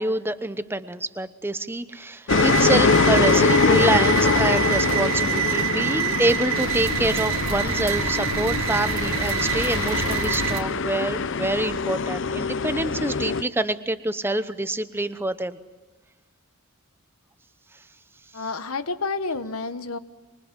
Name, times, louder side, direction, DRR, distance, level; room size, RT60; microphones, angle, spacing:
voice 1, 0.0-15.6, right 2 dB, 10° right, 12 dB, 0.9 m, -26 dB
sound 1, 2.3-13.4, left 4 dB, 60° left, 0.8 m, -23 dB
sound 2, 2.3-10.6, right 8 dB, 70° right, 2.1 m, -26 dB
voice 2, 18.3-20.0, left 3 dB, 80° left, 12 dB, 1.2 m, -29 dB
25.5 x 23.5 x 7.5 m, 1.2 s
head